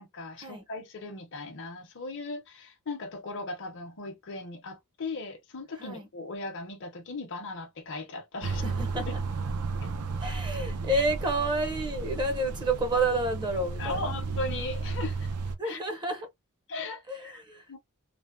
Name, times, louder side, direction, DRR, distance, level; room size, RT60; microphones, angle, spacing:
voice 1, 0.0-8.6 9.8-9.9 13.8-15.3 15.6-15.8 16.7-17.4 17.7-17.8, left 3 dB, 60° left, 0.7 m, -38 dB
voice 2, 8.4-9.2 10.2-14.1 15.6-16.3 17.1-17.8, right 2 dB, 20° right, 0.6 m, -30 dB
sound 1, 8.4-15.5, right 4 dB, 85° right, 0.6 m, -33 dB
3.3 x 2.0 x 2.5 m
head